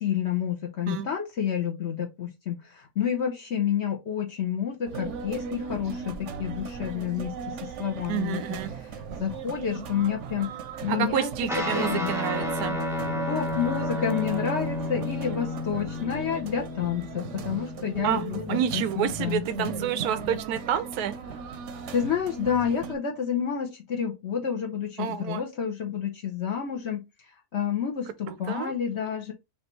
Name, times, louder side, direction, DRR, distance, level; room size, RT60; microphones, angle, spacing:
voice 1, 0.0-10.5 10.8-12.1 13.3-19.7 21.9-27.0 27.5-29.3, left 8 dB, 55° left, 0.9 m, -29 dB
sound 1, 4.8-23.0, right 5 dB, 60° right, 0.9 m, -38 dB
voice 2, 8.1-8.7 10.9-12.8 18.0-18.2 18.5-21.1 25.0-25.4 28.5-28.7, right 9 dB, 90° right, 1.1 m, -28 dB
Guitar, 11.5-19.1, left 2 dB, 5° right, 0.5 m, -32 dB
5.2 x 2.6 x 3.1 m
omnidirectional pair, 1.6 m